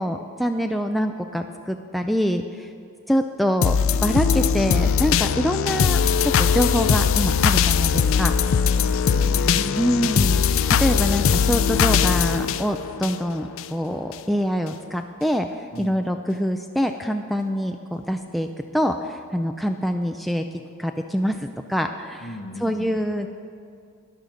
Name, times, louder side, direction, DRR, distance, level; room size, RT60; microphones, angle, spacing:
voice 1, 0.0-2.7 3.1-8.3 9.8-15.5 15.8-18.5 18.7-20.4 20.8-22.3 22.6-23.3, equal, ahead, 4 dB, 0.4 m, -25 dB
sound 1, 3.6-13.7 14.1-14.2, left 6 dB, 65° left, 0.4 m, -20 dB
voice 2, 8.7-10.1 15.7-16.0 22.2-23.0, left 1 dB, 45° left, 4 dB, 1.2 m, -36 dB
13.0 x 10.5 x 5.1 m, 2.4 s
head